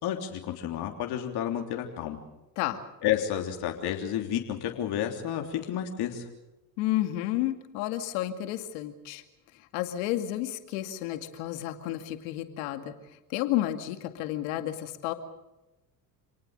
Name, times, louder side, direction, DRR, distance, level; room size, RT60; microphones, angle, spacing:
voice 1, 0.0-2.2 3.0-6.3, left 10 dB, 70° left, 3 dB, 3.5 m, -31 dB
voice 2, 6.8-9.2 9.5-12.9 13.3-15.1, left 14 dB, 85° left, 8 dB, 2.3 m, -31 dB
28.0 x 19.0 x 6.7 m, 0.98 s
supercardioid pair, 75°, 40 cm